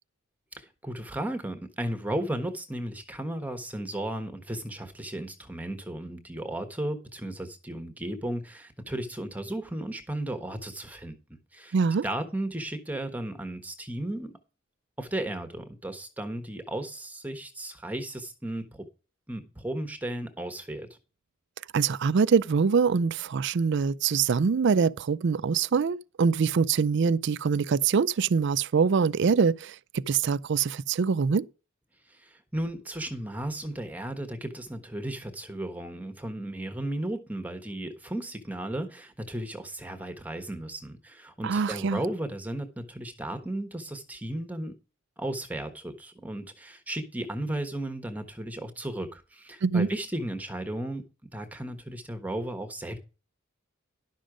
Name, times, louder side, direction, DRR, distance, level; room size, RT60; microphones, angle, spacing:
voice 1, 0.6-11.7 12.0-14.4 15.0-18.9 19.3-21.0 32.1-44.7 45.2-51.1 51.3-53.0, right 1 dB, 10° right, 1.3 m, -35 dB
voice 2, 11.7-12.1 21.7-31.5 41.4-42.0 49.6-49.9, right 5 dB, 60° right, 0.4 m, -24 dB
11.5 x 6.3 x 5.0 m
head